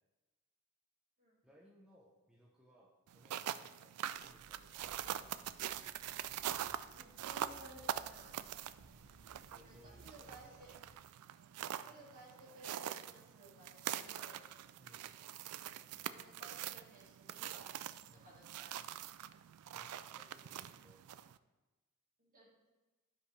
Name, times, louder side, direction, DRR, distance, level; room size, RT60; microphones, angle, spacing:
voice 1, 1.4-5.2 9.4-10.7 11.8-12.1 14.8-15.1 18.1-18.3 19.7-21.0, equal, 5° right, -4 dB, 0.7 m, -65 dB
sound 1, 3.1-21.4, right 11 dB, 85° right, 0.3 m, -44 dB
sound 2, 4.1-11.0, right 1 dB, 70° right, 1.1 m, -63 dB
voice 2, 6.9-8.4 9.6-10.7 11.9-14.4 15.9-17.7 18.1-19.0 22.2-22.5, right 1 dB, 40° right, -5 dB, 2.4 m, -58 dB
12.5 x 5.2 x 3.2 m, 1.1 s
head